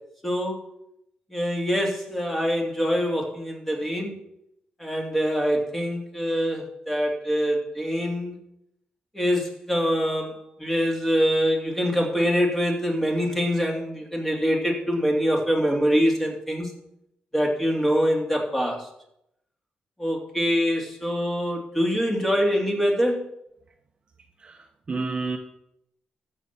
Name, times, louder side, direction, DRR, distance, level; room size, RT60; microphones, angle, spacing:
voice 1, 0.2-0.6 1.3-4.1 4.8-8.4 9.1-16.7 17.3-18.9 20.0-23.2, equal, 10° left, 1 dB, 2.8 m, -24 dB
voice 2, 24.4-25.4, right 4 dB, 35° right, 4 dB, 1.1 m, -30 dB
13.5 x 7.0 x 6.0 m, 0.78 s
cardioid pair, 110°, 3 cm